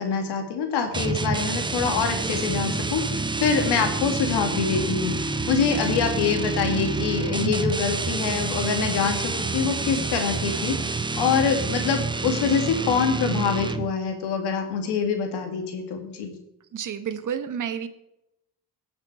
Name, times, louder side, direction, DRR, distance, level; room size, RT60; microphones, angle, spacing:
voice 1, 0.0-5.1 5.5-16.3, left 6 dB, 75° left, 5 dB, 2.2 m, -25 dB
sound 1, 0.9-14.0, right 3 dB, 10° right, 0.7 m, -28 dB
voice 2, 16.7-17.9, right 8 dB, 50° right, 11 dB, 1.1 m, -30 dB
18.0 x 6.0 x 4.5 m, 0.85 s
cardioid pair, 85°, 41 cm